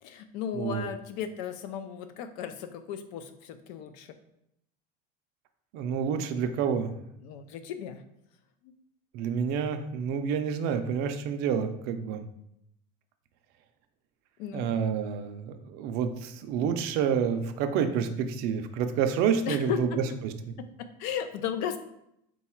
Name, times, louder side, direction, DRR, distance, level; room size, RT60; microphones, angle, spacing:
voice 1, 0.0-4.2 7.2-8.0 8.6-8.7 14.4-14.7 19.5-20.0 20.6-21.8, left 8 dB, 70° left, 9 dB, 0.5 m, -35 dB
voice 2, 0.5-0.9 5.7-6.9 9.1-12.2 14.5-19.9 20.2-20.3, right 7 dB, 55° right, 7 dB, 0.4 m, -28 dB
3.9 x 2.3 x 4.3 m, 0.78 s
cardioid pair, 160°, 20 cm